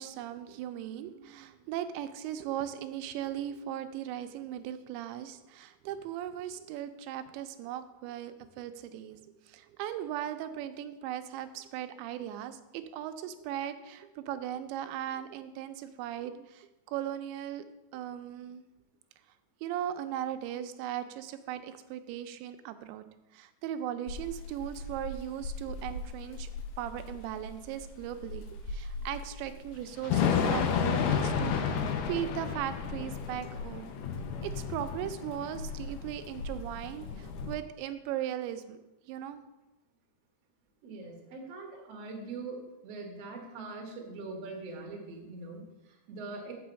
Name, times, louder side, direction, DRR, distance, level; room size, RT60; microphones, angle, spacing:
voice 1, 0.0-17.6 17.9-18.6 19.6-23.0 23.3-26.5 26.8-34.0 34.4-38.8 39.1-39.5, right 11 dB, 90° right, 9 dB, 2.9 m, -38 dB
Thunder / Rain, 24.1-37.5, left 6 dB, 90° left, 3.0 m, -33 dB
voice 2, 40.8-46.5, right 3 dB, 55° right, 0 dB, 1.8 m, -42 dB
6.3 x 6.1 x 7.3 m, 0.99 s
omnidirectional pair, 5.1 m